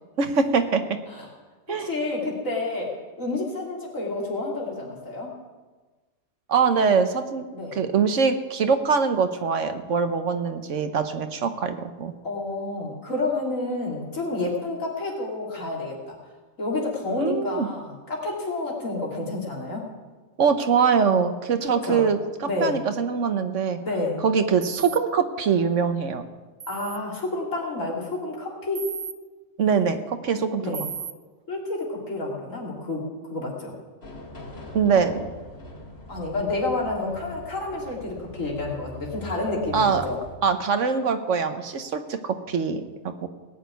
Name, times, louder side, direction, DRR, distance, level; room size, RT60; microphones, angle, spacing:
voice 1, 0.2-0.8 1.7-1.9 6.5-7.5 7.7-12.1 17.2-17.7 20.4-23.8 24.2-26.2 29.6-30.9 34.7-35.3 39.7-40.1 40.4-43.3, right 6 dB, 70° right, 8 dB, 1.3 m, -23 dB
voice 2, 1.8-2.9 3.2-5.3 7.5-7.8 12.2-16.1 16.6-19.8 21.8-22.0 22.4-22.7 23.8-24.2 26.7-28.9 30.6-30.8 31.5-33.7 34.9-35.0 36.1-40.2, left 2 dB, 85° left, -2 dB, 3.5 m, -29 dB
sound 1, 24.6-25.0 26.6-27.0 28.7-29.1 30.7-31.1, right 7 dB, 50° right, 0.4 m, -34 dB
sound 2, 34.0-40.3, left 1 dB, 50° left, 3.4 m, -42 dB
18.0 x 6.5 x 9.2 m, 1.3 s
omnidirectional pair, 1.3 m